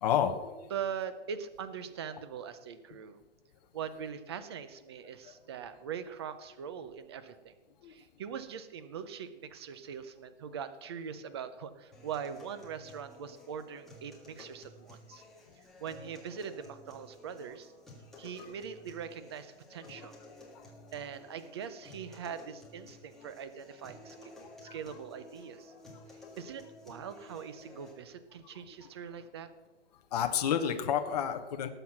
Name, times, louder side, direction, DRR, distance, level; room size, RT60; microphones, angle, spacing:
voice 1, 0.0-0.7 5.2-5.3 7.8-7.9 18.2-18.5 19.9-20.1 23.2-23.3 24.6-24.7 30.1-31.7, left 9 dB, 35° left, 5 dB, 1.0 m, -31 dB
voice 2, 0.7-3.2 3.7-7.5 7.8-15.2 15.6-17.7 18.2-20.2 20.9-24.3 24.6-25.7 26.4-29.5, right 7 dB, 25° right, 12 dB, 0.6 m, -42 dB
sound 1, 11.9-27.9, left 2 dB, ahead, 1.7 m, -53 dB
19.0 x 7.9 x 5.9 m, 1.2 s
hypercardioid pair, 170°, 35 cm